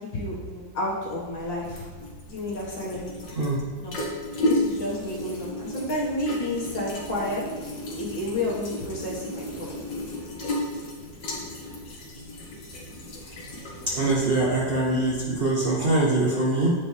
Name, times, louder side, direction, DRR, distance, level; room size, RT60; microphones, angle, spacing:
voice 1, 0.1-1.9 2.3-3.5 3.8-4.0 4.5-7.4 8.0-9.7, left 1 dB, 85° left, -5 dB, 2.4 m, -31 dB
sound 1, 1.0-16.1, left 1 dB, 70° left, 1.9 m, -34 dB
voice 2, 13.9-16.7, right 2 dB, 45° right, -5 dB, 0.7 m, -23 dB
8.9 x 4.4 x 3.3 m, 1.3 s
omnidirectional pair, 2.0 m